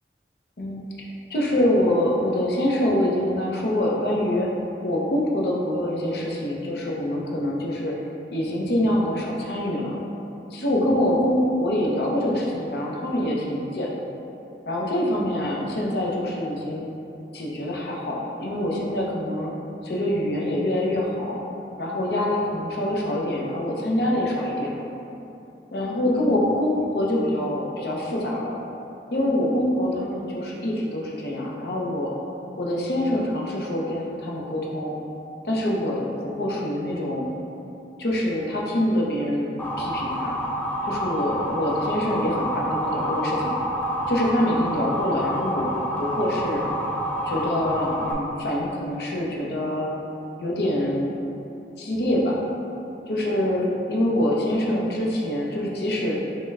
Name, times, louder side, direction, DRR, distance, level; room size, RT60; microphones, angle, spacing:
voice 1, 0.6-4.5 4.8-7.9 8.3-9.9 10.5-13.9 14.7-16.9 17.3-19.5 19.8-21.4 21.8-24.8 25.7-28.6 29.1-32.1 32.6-35.0 35.4-37.3 38.0-40.4 40.8-43.5 44.1-46.6 47.2-49.9 50.4-51.1 51.8-52.4 53.1-56.2, left 1 dB, 60° left, -3 dB, 0.6 m, -25 dB
Motor vehicle (road) / Siren, 39.6-48.1, equal, 10° left, 0.3 m, -28 dB
5.4 x 2.2 x 3.4 m, 2.8 s
head